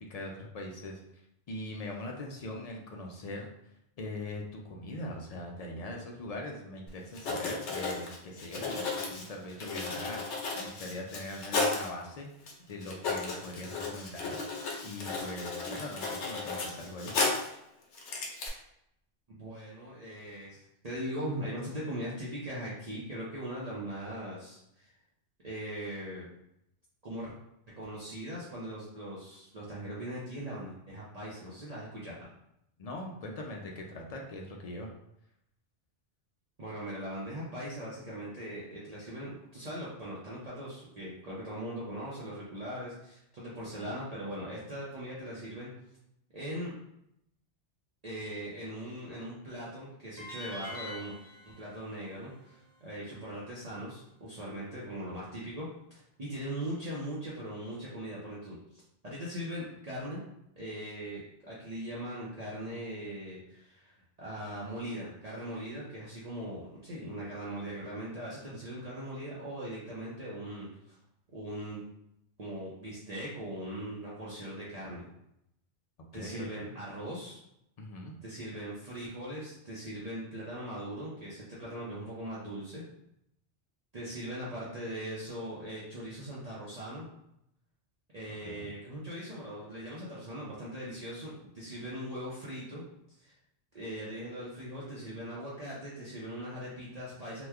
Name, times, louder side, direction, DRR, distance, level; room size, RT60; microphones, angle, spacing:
voice 1, 0.1-1.0 1.5-3.5 4.0-14.4 14.8-17.1 32.8-34.9 43.8-43.9 76.1-76.8 77.8-78.1 88.4-88.7, left 1 dB, 65° left, 0 dB, 0.3 m, -41 dB
Writing, 6.9-7.0 7.1-11.9 12.5-12.6 12.8-17.6 17.9-18.5, left 3 dB, 85° left, 1.0 m, -34 dB
voice 2, 19.3-24.9 25.4-26.3 27.0-27.3 27.8-32.3 36.6-45.7 46.3-46.7 48.0-51.2 51.4-55.7 56.2-60.2 60.6-71.0 71.3-71.8 72.4-75.1 76.1-77.4 78.2-82.8 83.9-87.1 88.1-92.8 93.2-93.3 93.7-97.5, right 1 dB, 45° right, -7 dB, 0.6 m, -40 dB
sound 1, 50.2-53.3, left 2 dB, 25° left, 0.6 m, -46 dB
3.0 x 2.2 x 3.4 m, 0.80 s
omnidirectional pair, 1.2 m